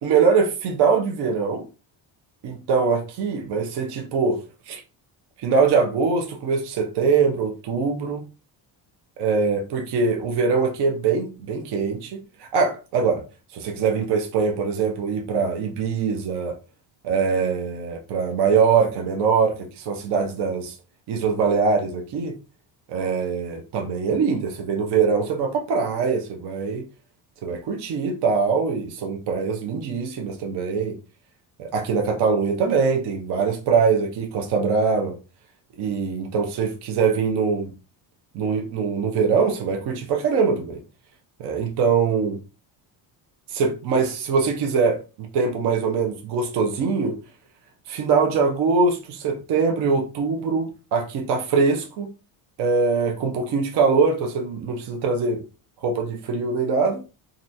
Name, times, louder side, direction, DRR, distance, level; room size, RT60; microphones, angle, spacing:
voice 1, 0.0-1.7 2.4-4.8 5.4-8.3 9.2-13.2 13.5-16.6 17.0-20.8 21.1-22.3 22.9-26.9 27.4-31.0 31.6-35.2 35.8-37.7 38.3-40.8 41.4-42.4 43.5-47.2 47.9-52.1 52.6-55.4 55.8-57.1, right 5 dB, 60° right, 0.7 m, -23 dB
3.2 x 2.6 x 2.7 m
cardioid pair, 165°, 46 cm